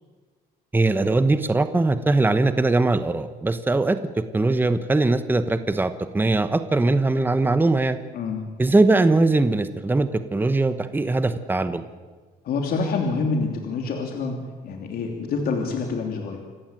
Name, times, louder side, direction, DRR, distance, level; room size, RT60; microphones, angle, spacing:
voice 1, 0.7-8.0 8.6-11.8, right 2 dB, 10° right, 11 dB, 1.1 m, -21 dB
voice 2, 8.1-8.4 12.4-14.4 14.6-16.4, left 4 dB, 60° left, 2 dB, 3.2 m, -26 dB
27.0 x 14.5 x 9.1 m, 1.4 s
cardioid pair, 110°, 17 cm